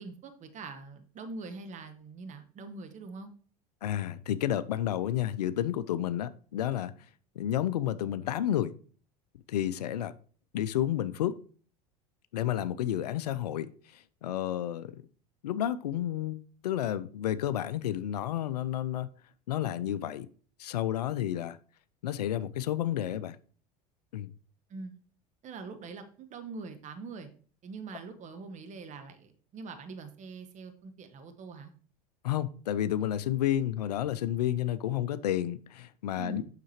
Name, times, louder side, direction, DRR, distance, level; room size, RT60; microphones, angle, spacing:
voice 1, 0.0-3.3 24.7-24.9 25.4-27.3 27.6-31.7 36.2-36.5, right 4 dB, 35° right, 1.1 m, -43 dB
voice 2, 3.8-6.9 7.4-8.7 9.5-10.1 10.5-11.3 12.3-13.7 14.2-14.9 15.4-19.1 19.5-20.3 20.6-21.6 22.0-23.4 24.1-24.3 32.2-36.4, left 11 dB, 85° left, 0.4 m, -31 dB
7.4 x 5.8 x 3.0 m
hypercardioid pair, 80°, 20 cm